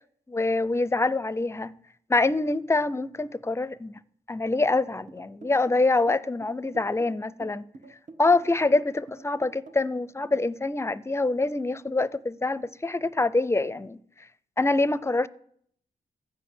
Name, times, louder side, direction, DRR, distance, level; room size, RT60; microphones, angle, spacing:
voice 1, 0.3-1.7 2.1-4.0 4.3-7.6 8.2-14.0 14.6-15.3, left 2 dB, 15° left, 0.5 m, -25 dB
sound 1, 4.7-10.0, right 3 dB, 50° right, 1.4 m, -46 dB
13.0 x 5.1 x 8.9 m
cardioid pair, 65°, 15 cm